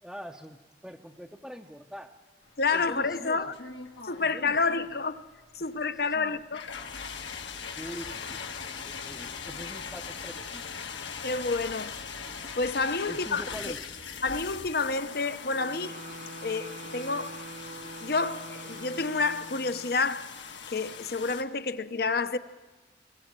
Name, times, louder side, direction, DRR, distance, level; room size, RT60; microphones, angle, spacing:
voice 1, 0.0-2.2 2.7-3.6 4.1-4.9 5.6-6.4 7.7-8.4 8.8-10.6 13.1-13.9, equal, ahead, 0.6 m, -44 dB
sound 1, 2.5-21.4, left 6 dB, 75° left, 1.5 m, -41 dB
voice 2, 2.6-3.5 4.0-5.2 5.5-6.7 11.2-12.0 12.6-13.4 14.2-16.0 16.4-17.4 17.8-20.3 20.7-22.4, left 4 dB, 55° left, 0.8 m, -29 dB
sound 2, 15.5-20.1, right 3 dB, 40° right, 0.6 m, -45 dB
22.0 x 18.0 x 7.4 m
head